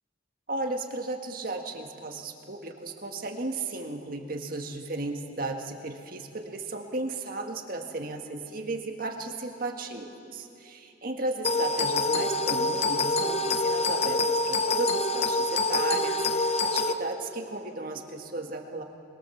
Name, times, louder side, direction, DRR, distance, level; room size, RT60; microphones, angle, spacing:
voice 1, 0.5-18.8, right 2 dB, 50° right, 3 dB, 1.8 m, -35 dB
sound 1, 11.4-16.9, left 2 dB, 35° left, 0.8 m, -26 dB
22.5 x 22.0 x 7.2 m, 2.7 s
head